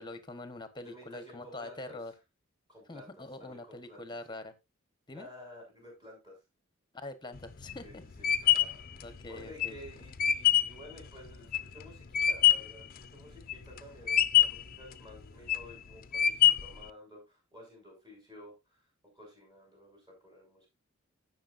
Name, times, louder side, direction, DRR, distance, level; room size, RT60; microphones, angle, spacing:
voice 1, 0.0-2.1 2.9-4.5 5.1-5.3 6.9-8.0 9.0-9.8, left 2 dB, 20° left, 1.1 m, -44 dB
voice 2, 0.8-2.0 2.7-4.0 5.1-6.4 7.8-18.8 19.1-20.7, left 1 dB, 20° right, 7.0 m, -52 dB
sound 1, 7.3-12.8 13.2-13.8 14.1-14.7 15.2-15.7 16.1-16.8, left 11 dB, 45° left, 0.6 m, -25 dB
16.5 x 6.3 x 2.6 m
head